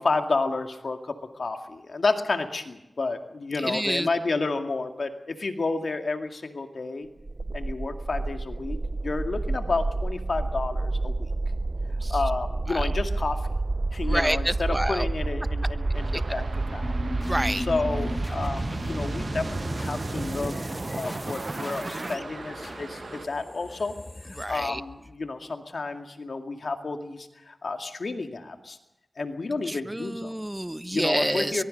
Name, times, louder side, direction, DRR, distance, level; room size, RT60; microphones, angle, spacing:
voice 1, 0.0-7.1 7.5-8.8 9.0-11.3 12.1-13.4 13.9-16.9 17.7-20.6 20.9-23.9 24.3-28.8 29.2-30.3 30.9-31.6, left 3 dB, 75° left, 6 dB, 2.1 m, -30 dB
voice 2, 3.6-4.1 12.0-12.1 12.7-12.8 14.0-15.1 16.1-16.4 17.2-17.7 24.4-24.8 29.7-31.6, right 1 dB, 15° right, 12 dB, 1.1 m, -28 dB
sound 1, 7.2-22.2, right 2 dB, 50° right, 0.7 m, -30 dB
sound 2, 14.7-25.5, left 1 dB, 40° left, 1.8 m, -38 dB
sound 3, 15.9-23.3, right 4 dB, 85° right, 1.0 m, -43 dB
22.5 x 22.5 x 5.4 m, 0.93 s
cardioid pair, 45°, 0 cm